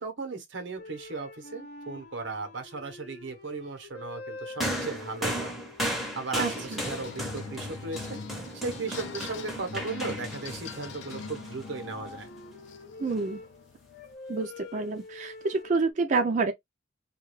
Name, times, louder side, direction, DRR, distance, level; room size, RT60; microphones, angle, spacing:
voice 1, 0.0-5.5 6.1-8.2 8.5-12.3, right 3 dB, 90° right, 0.8 m, -36 dB
sound 1, 0.8-10.9 11.6-15.9, left 3 dB, 55° left, 0.8 m, -47 dB
sound 2, 4.6-12.1 13.1-13.2, equal, ahead, 0.7 m, -35 dB
voice 2, 6.4-6.8 13.0-13.4 14.3-16.5, right 3 dB, 45° right, 0.4 m, -28 dB
sound 3, 6.5-14.1, left 5 dB, 80° left, 0.4 m, -43 dB
2.3 x 2.3 x 3.1 m
head